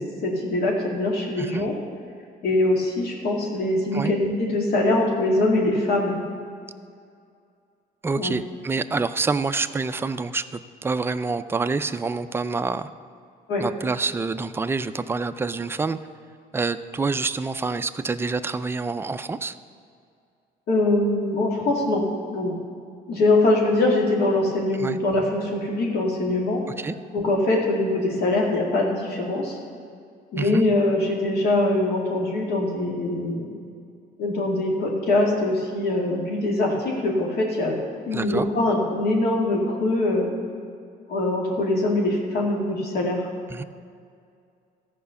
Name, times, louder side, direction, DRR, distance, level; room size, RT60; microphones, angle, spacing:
voice 1, 0.0-1.7 2.4-6.2 8.2-8.4 13.5-13.6 20.7-22.6 23.1-26.6 27.1-29.6 30.3-33.5 34.2-37.8 38.1-40.3 41.1-43.3, left 2 dB, 70° left, 0 dB, 2.3 m, -23 dB
voice 2, 8.0-12.9 13.6-16.0 16.5-19.6 24.8-25.0 26.8-26.9 30.4-30.6 38.1-38.5 43.5-43.6, right 4 dB, 15° right, 10 dB, 0.4 m, -27 dB
14.0 x 5.1 x 6.9 m, 2.3 s
cardioid pair, 110°, 17 cm